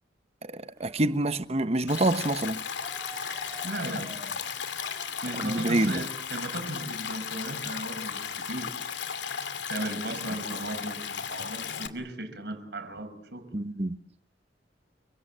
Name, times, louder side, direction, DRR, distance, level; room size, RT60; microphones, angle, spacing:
voice 1, 0.4-2.6 5.4-6.0 13.5-14.0, right 1 dB, 35° right, 1.1 m, -27 dB
Cheering, 0.8-7.2, right 2 dB, 15° right, 2.8 m, -50 dB
Stream, 1.9-11.9, left 7 dB, 80° left, 2.6 m, -35 dB
voice 2, 3.6-4.4 5.2-8.8 9.7-13.5, right 1 dB, 65° right, 5.8 m, -36 dB
28.5 x 24.5 x 7.6 m
head